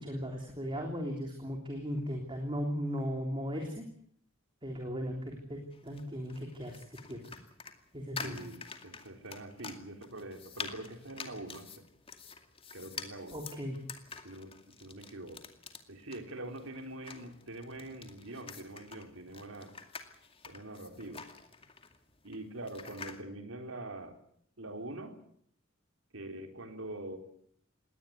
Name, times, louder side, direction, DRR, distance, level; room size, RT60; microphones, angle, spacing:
voice 1, 0.0-3.8 4.6-7.4 7.9-8.4 13.3-13.8, equal, 25° right, 2 dB, 3.4 m, -37 dB
sound 1, 5.7-23.2, left 5 dB, 30° left, 2.3 m, -48 dB
voice 2, 8.2-11.8 12.7-13.4 14.2-15.5 15.9-19.8 20.5-21.2 22.2-24.2 24.6-25.2 26.1-27.2, right 1 dB, 75° right, 6 dB, 4.0 m, -44 dB
21.0 x 18.0 x 9.5 m, 0.65 s
head